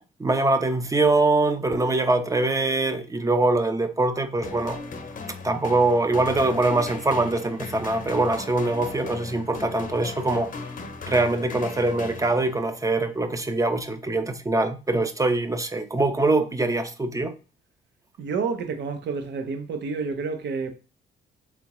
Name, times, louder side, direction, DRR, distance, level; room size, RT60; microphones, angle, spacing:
voice 1, 0.2-4.8 5.4-10.5 11.1-17.3, right 2 dB, 15° right, 0.6 m, -23 dB
sound 1, 4.4-12.8, left 4 dB, 45° left, 0.7 m, -38 dB
voice 2, 18.2-20.7, right 4 dB, 65° right, 0.8 m, -29 dB
3.7 x 3.3 x 3.0 m
cardioid pair, 90°, 20 cm